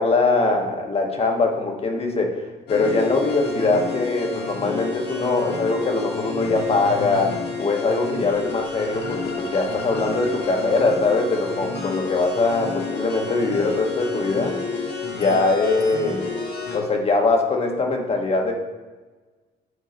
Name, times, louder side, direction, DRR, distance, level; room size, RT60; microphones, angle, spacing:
voice 1, 0.0-2.4 2.7-14.5 15.1-16.4 16.7-18.5, left 3 dB, 35° left, 2 dB, 1.3 m, -22 dB
sound 1, 2.7-16.8, left 4 dB, 70° left, 1.5 m, -30 dB
7.9 x 3.8 x 5.0 m, 1.3 s
cardioid pair, 105°, 18 cm